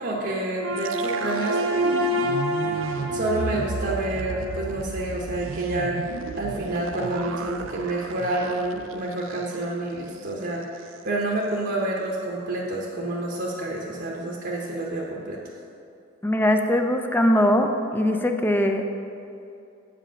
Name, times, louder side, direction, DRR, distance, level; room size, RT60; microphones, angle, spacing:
voice 1, 0.0-1.6 3.1-6.0 6.4-15.4, right 2 dB, 55° right, -3 dB, 0.8 m, -28 dB
sound 1, 0.6-4.9, equal, 90° right, 0.8 m, -27 dB
sound 2, 0.8-9.8 10.1-10.3 10.6-11.0, right 4 dB, 70° right, 0.4 m, -34 dB
voice 2, 16.2-18.8, left 1 dB, 10° left, 5 dB, 0.4 m, -21 dB
7.8 x 5.1 x 5.6 m, 2.6 s
head